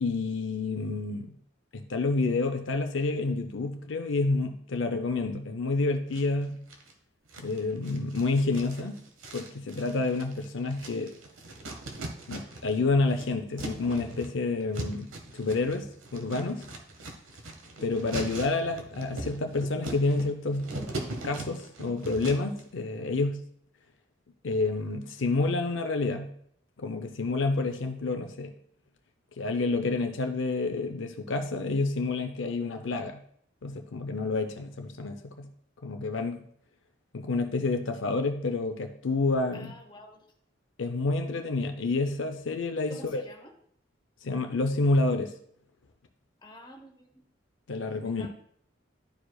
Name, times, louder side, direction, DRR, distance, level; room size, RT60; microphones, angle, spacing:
voice 1, 0.0-1.3 1.7-6.7 7.4-9.0 9.3-11.1 12.3-15.1 15.3-16.6 17.8-20.7 21.2-23.5 24.4-26.4 26.8-28.5 29.4-33.2 33.6-35.5 35.8-36.4 37.1-39.7 40.8-43.2 44.2-45.3 47.7-48.3, left 3 dB, 70° left, 5 dB, 0.6 m, -29 dB
sound 1, 6.1-6.9 7.3-12.8 13.0-22.6, right 2 dB, 85° right, 1.1 m, -40 dB
voice 2, 39.5-40.2 42.9-43.5 46.4-47.2 48.0-48.3, left 1 dB, 20° left, 2 dB, 0.9 m, -49 dB
11.5 x 4.7 x 2.3 m, 0.66 s
head